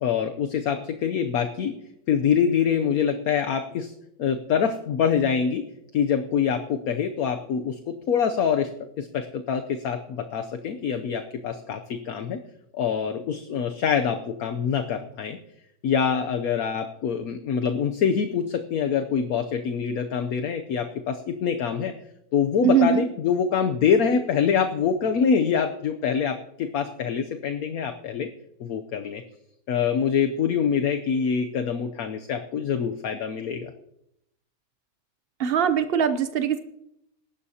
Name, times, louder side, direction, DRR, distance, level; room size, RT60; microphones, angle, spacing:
voice 1, 0.0-1.7 2.1-3.9 4.2-5.6 5.9-7.8 8.1-8.7 9.0-12.4 12.7-15.4 15.8-21.9 22.3-28.3 28.6-29.2 29.7-33.7, left 7 dB, 65° left, 7 dB, 1.1 m, -25 dB
voice 2, 22.6-23.0 35.4-36.6, right 7 dB, 70° right, 9 dB, 0.5 m, -21 dB
21.0 x 12.0 x 2.8 m, 0.80 s
omnidirectional pair, 1.8 m